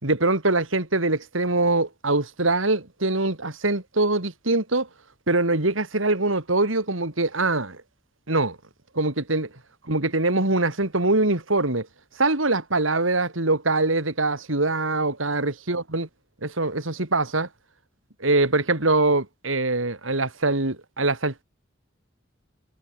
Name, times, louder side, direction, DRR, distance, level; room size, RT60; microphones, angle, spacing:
voice 1, 0.0-4.9 5.3-7.8 8.3-8.6 9.0-9.5 9.9-11.9 12.2-16.1 16.4-17.5 18.2-21.4, right 2 dB, 90° right, 3.5 m, -23 dB
head